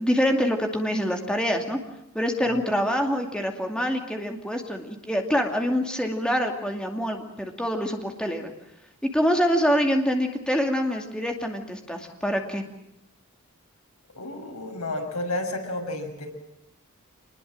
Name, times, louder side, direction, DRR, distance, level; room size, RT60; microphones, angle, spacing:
voice 1, 0.0-1.8 2.1-8.5 9.0-12.6, equal, 5° left, 3 dB, 2.4 m, -25 dB
voice 2, 14.2-16.3, left 2 dB, 90° left, 2 dB, 6.5 m, -31 dB
26.0 x 20.5 x 7.7 m, 0.83 s
head